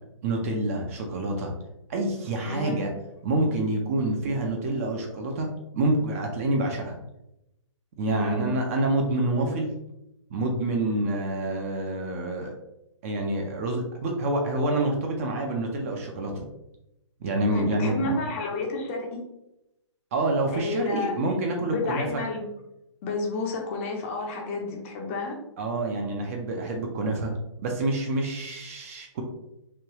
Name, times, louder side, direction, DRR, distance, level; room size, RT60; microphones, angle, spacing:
voice 1, 0.2-1.5 1.9-2.9 3.2-5.5 5.7-7.0 8.0-9.7 10.3-12.5 13.0-16.4 17.2-18.2 20.1-22.2 25.6-27.3 27.6-29.2, right 2 dB, 30° right, 2 dB, 0.4 m, -27 dB
voice 2, 2.5-2.9 8.1-8.5 17.5-19.2 20.5-21.2 21.6-22.4 23.0-25.4, left 3 dB, 25° left, 1 dB, 0.5 m, -31 dB
3.1 x 2.2 x 2.8 m, 0.87 s
hypercardioid pair, 150°, 16 cm